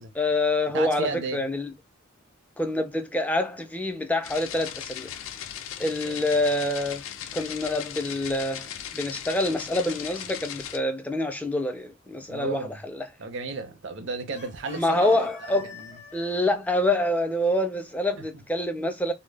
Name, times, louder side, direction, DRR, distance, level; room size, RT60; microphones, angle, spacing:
voice 1, 0.2-1.7 2.6-5.1 5.8-7.0 7.3-13.1 14.8-15.7 16.1-19.1, left 1 dB, 5° left, 0.3 m, -26 dB
voice 2, 0.7-1.4 6.0-6.2 12.3-12.8 13.2-15.6, right 3 dB, 60° right, 0.5 m, -33 dB
sound 1, 4.2-10.8, left 9 dB, 75° left, 0.4 m, -38 dB
Chicken rooster, 9.9-10.9 14.3-16.4, left 5 dB, 35° left, 0.7 m, -46 dB
2.0 x 2.0 x 3.2 m
head